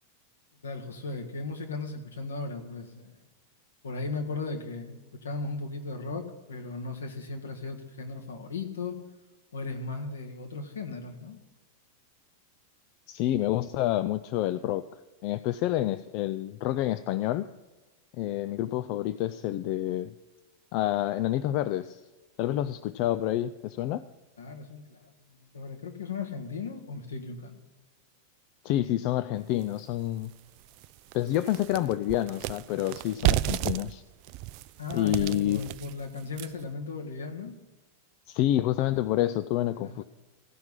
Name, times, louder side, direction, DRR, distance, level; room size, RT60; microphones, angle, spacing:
voice 1, 0.6-3.1 3.8-9.0 9.5-11.4 24.4-27.6 34.8-37.6 39.8-40.0, left 3 dB, 70° left, 2 dB, 1.6 m, -37 dB
voice 2, 13.1-14.9 15.2-17.5 18.2-20.1 20.7-22.0 22.4-24.0 28.6-30.3 31.1-34.0 34.9-35.6 38.3-40.0, left 13 dB, 45° left, 12 dB, 0.4 m, -28 dB
sound 1, 29.6-29.7 30.2-30.3 30.7-36.7, right 16 dB, 45° right, 0.3 m, -32 dB
16.0 x 5.9 x 8.0 m, 1.1 s
figure-of-eight pair, 90°, 0 cm